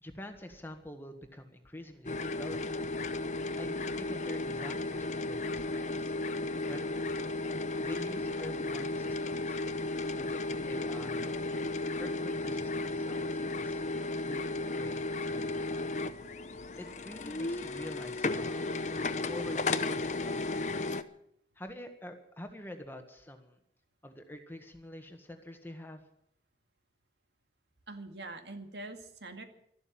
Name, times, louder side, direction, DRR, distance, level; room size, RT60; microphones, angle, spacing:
voice 1, 0.0-2.7 3.6-6.1 6.5-7.0 7.8-9.6 10.2-11.7 12.0-13.8 14.2-15.9 16.8-18.7 19.2-20.5 21.5-23.6 24.0-26.0, left 1 dB, 10° left, 6 dB, 1.6 m, -46 dB
sound 1, 2.1-21.0, left 2 dB, 40° left, 0.8 m, -34 dB
voice 2, 27.9-29.4, right 2 dB, 70° right, 6 dB, 2.1 m, -44 dB
13.5 x 12.0 x 8.7 m, 0.71 s
head